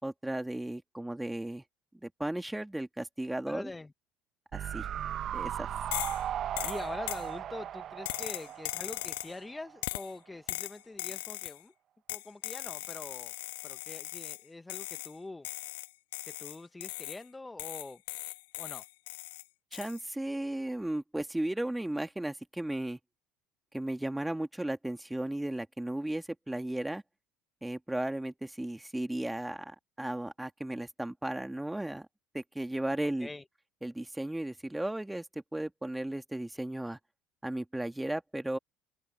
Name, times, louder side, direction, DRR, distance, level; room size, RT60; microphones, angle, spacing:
voice 1, 0.0-1.6 2.0-3.7 4.5-4.9 5.3-5.7 19.7-23.0 23.7-27.0 27.6-32.1 32.3-33.3 33.8-37.0 37.4-38.6, right 1 dB, 5° right, 2.8 m, -35 dB
voice 2, 3.4-3.9 6.6-11.7 12.1-13.3 13.6-15.5 16.2-18.0 18.6-18.8 33.2-33.4, left 2 dB, 15° left, 1.2 m, -44 dB
sound 1, 4.5-9.8 10.0-10.1, right 10 dB, 45° right, 1.2 m, -37 dB
sound 2, 5.9-6.2 6.6-7.3 8.0-9.4 9.8-10.1 10.5-11.6 12.1-14.4 14.7-15.1 15.4-17.2 17.6-19.4 19.7-20.0, left 21 dB, 70° left, 1.3 m, -39 dB
hypercardioid pair, 70°, 0 cm